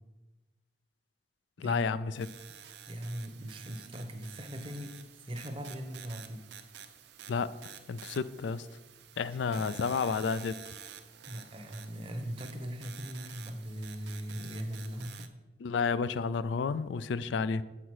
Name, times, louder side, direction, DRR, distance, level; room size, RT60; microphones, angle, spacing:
voice 1, 1.6-2.3 7.3-8.7 9.2-10.7 15.6-17.6, left 5 dB, 85° left, 15 dB, 0.4 m, -31 dB
sound 1, 2.2-15.3, right 8 dB, 75° right, 0.6 m, -50 dB
voice 2, 2.9-6.4 9.5-9.7 11.3-15.3, equal, 30° right, 6 dB, 0.8 m, -40 dB
7.9 x 5.7 x 4.7 m, 1.1 s
head